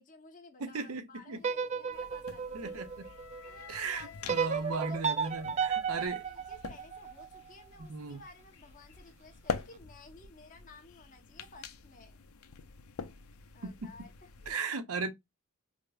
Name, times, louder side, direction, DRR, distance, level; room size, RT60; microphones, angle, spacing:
voice 1, 0.0-2.8 3.4-5.4 6.0-12.2 13.5-14.8, left 2 dB, 40° left, 0.9 m, -55 dB
voice 2, 0.6-1.4 2.5-2.9 3.7-6.2 7.8-8.2 13.6-13.9 14.5-15.1, right 4 dB, 85° right, 0.8 m, -36 dB
sound 1, 1.4-3.6 4.3-7.4, right 6 dB, 30° right, 0.3 m, -34 dB
sound 2, 1.9-14.5, left 5 dB, 85° left, 0.6 m, -45 dB
Wind instrument woodwind instrument, 2.4-6.4, left 6 dB, 70° left, 1.1 m, -54 dB
5.1 x 2.1 x 2.4 m
head